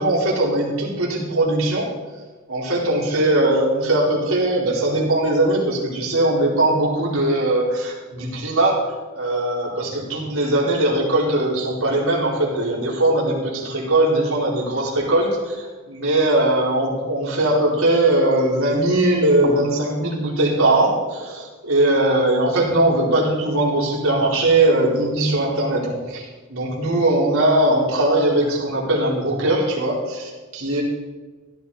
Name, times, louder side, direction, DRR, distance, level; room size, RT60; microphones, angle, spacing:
voice 1, 0.0-1.9 2.5-30.8, right 1 dB, 75° right, -5 dB, 4.3 m, -20 dB
16.0 x 11.5 x 4.2 m, 1.3 s
head